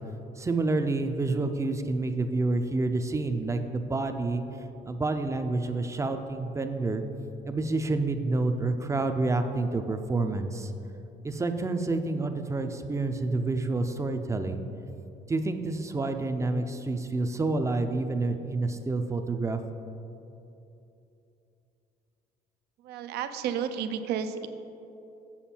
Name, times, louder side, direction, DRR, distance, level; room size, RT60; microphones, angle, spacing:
voice 1, 0.4-4.4 4.9-7.0 7.5-10.7 11.2-14.6 15.3-19.6, right 3 dB, 15° right, 7 dB, 0.5 m, -28 dB
voice 2, 22.8-24.5, right 8 dB, 75° right, 10 dB, 0.5 m, -32 dB
7.2 x 6.6 x 4.4 m, 2.9 s
cardioid pair, 110°, 17 cm